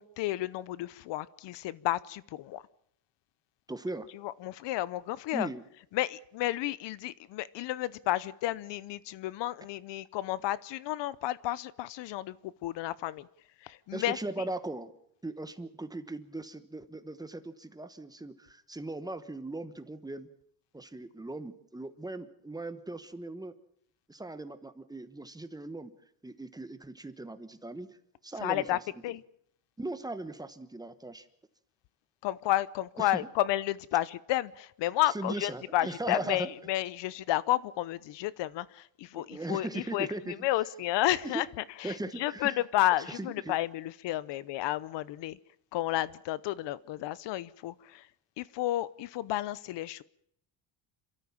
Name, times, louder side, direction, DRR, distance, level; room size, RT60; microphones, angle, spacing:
voice 1, 0.0-2.6 4.2-5.5 5.9-13.3 13.6-14.2 28.4-29.2 32.2-41.5 41.8-45.4 45.7-48.1 48.4-50.0, left 15 dB, 70° left, 20 dB, 0.8 m, -32 dB
voice 2, 3.7-4.1 5.3-5.6 13.9-14.9 15.2-20.3 20.7-23.5 24.1-25.9 26.2-28.0 28.2-28.8 29.8-31.3 33.0-33.3 35.1-36.5 39.1-40.3 41.2-41.4 41.8-42.6 43.1-43.5, right 2 dB, 10° right, 10 dB, 1.2 m, -38 dB
29.0 x 13.5 x 7.3 m, 0.70 s
cardioid pair, 150°, 44 cm